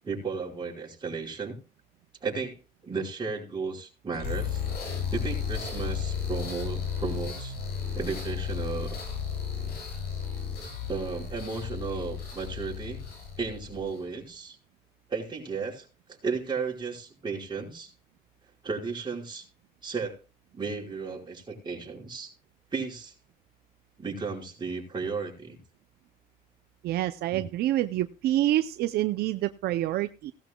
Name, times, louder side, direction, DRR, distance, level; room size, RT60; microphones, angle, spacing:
voice 1, 0.0-1.6 2.2-2.6 2.8-4.6 5.1-7.5 7.9-8.9 10.9-13.0 13.4-14.6 15.1-15.9 16.2-17.9 18.6-19.4 19.8-20.2 20.5-22.3 22.7-23.1 24.0-25.6 27.3-27.4, right 4 dB, 25° right, -3 dB, 4.9 m, -34 dB
sound 1, 4.1-14.1, left 7 dB, 70° left, 7.8 m, -34 dB
voice 2, 26.8-30.3, right 14 dB, 70° right, 11 dB, 0.6 m, -27 dB
17.5 x 12.0 x 2.3 m, 0.33 s
cardioid pair, 110°, 17 cm